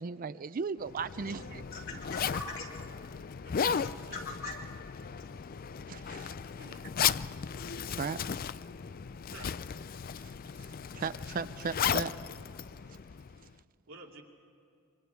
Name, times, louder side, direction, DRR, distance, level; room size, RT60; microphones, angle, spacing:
voice 1, 0.0-1.7 5.9-6.3 7.9-8.2 10.2-10.3 10.9-12.1, right 5 dB, 40° right, 14 dB, 0.4 m, -36 dB
Zipper (clothing), 0.8-13.5, left 7 dB, 45° left, 0.4 m, -36 dB
voice 2, 1.5-6.3, left 3 dB, 70° left, -3 dB, 4.9 m, -45 dB
voice 3, 3.4-4.2 6.4-6.9 9.3-9.5 13.9-14.2, right 3 dB, 85° right, 0 dB, 2.7 m, -52 dB
26.0 x 25.0 x 4.6 m, 2.6 s
head